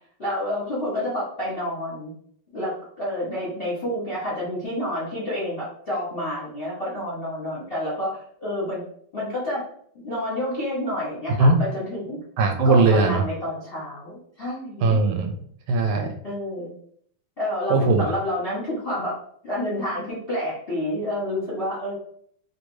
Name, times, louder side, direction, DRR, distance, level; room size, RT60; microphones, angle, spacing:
voice 1, 0.2-2.1 2.5-8.8 9.1-9.7 9.9-12.2 12.6-15.0 16.2-16.7 17.4-19.2 19.4-21.9, left 1 dB, 40° left, -8 dB, 0.8 m, -29 dB
voice 2, 12.4-13.2 14.8-15.3 15.7-16.2 17.7-18.2, right 3 dB, 80° right, 5 dB, 1.3 m, -19 dB
3.2 x 2.6 x 3.0 m, 0.63 s
omnidirectional pair, 2.3 m